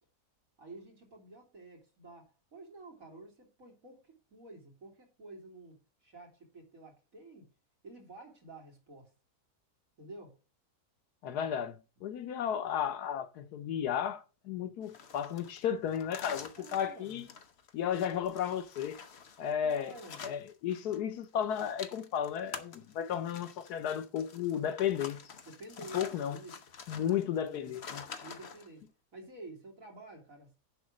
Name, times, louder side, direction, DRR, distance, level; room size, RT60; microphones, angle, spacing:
voice 1, 0.6-7.5 7.8-9.1 10.0-10.4 16.5-17.2 19.5-20.3 25.4-26.6 27.0-27.7 28.2-30.6, right 2 dB, 60° right, 3.4 m, -51 dB
voice 2, 11.2-17.3 17.7-19.0 19.4-19.9 20.2-25.2 25.9-26.4 26.9-28.0, left 9 dB, 85° left, 1.4 m, -34 dB
sound 1, 14.8-21.0 21.2-28.7, left 6 dB, 50° left, 1.1 m, -48 dB
10.5 x 3.9 x 6.4 m
omnidirectional pair, 1.6 m